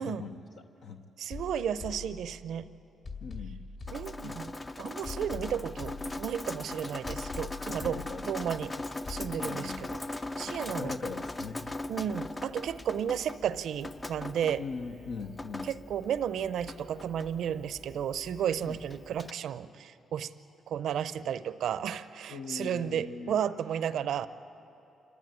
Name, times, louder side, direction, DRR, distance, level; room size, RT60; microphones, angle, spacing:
voice 1, 0.0-1.0 3.2-4.0 4.2-4.4 7.6-8.2 9.4-9.9 10.4-12.1 14.6-15.7 18.6-18.8 22.3-23.4, left 4 dB, 65° left, 4 dB, 1.0 m, -41 dB
voice 2, 1.2-2.7 3.9-8.0 8.3-8.7 9.1-10.0 10.4-10.9 11.9-14.6 15.7-20.3 20.7-24.3, right 9 dB, 70° right, 14 dB, 0.6 m, -33 dB
sound 1, 1.3-2.6 3.0-4.6 5.0-6.6 7.0-8.6 9.0-9.3, left 4 dB, 45° left, 2.3 m, -43 dB
Drip, 3.9-19.3, left 2 dB, 20° left, 0.6 m, -40 dB
26.5 x 13.5 x 9.2 m, 2.9 s
cardioid pair, 90°, 0 cm